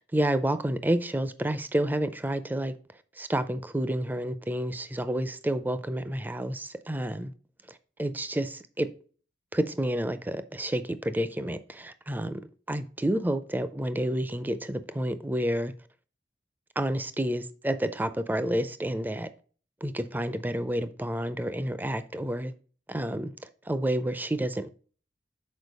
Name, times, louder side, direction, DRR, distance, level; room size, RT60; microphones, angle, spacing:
voice 1, 0.0-2.8 3.2-7.3 8.0-8.9 9.5-12.4 12.7-15.7 16.8-19.3 19.8-22.5 22.9-23.3 23.7-24.7, right 1 dB, 10° right, 0.4 m, -29 dB
6.4 x 4.6 x 5.2 m
head